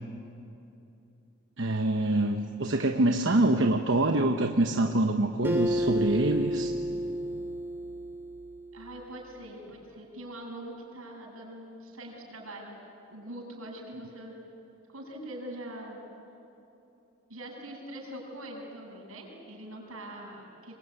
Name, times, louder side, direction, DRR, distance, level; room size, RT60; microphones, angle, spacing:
voice 1, 1.6-6.7, right 2 dB, 60° right, 4 dB, 1.1 m, -25 dB
Acoustic guitar, 5.4-8.9, equal, 10° right, 2.5 m, -31 dB
voice 2, 8.7-12.8 13.1-14.4 14.9-16.0 17.3-20.7, right 1 dB, 85° right, -1 dB, 7.8 m, -43 dB
26.0 x 23.0 x 9.7 m, 2.8 s
head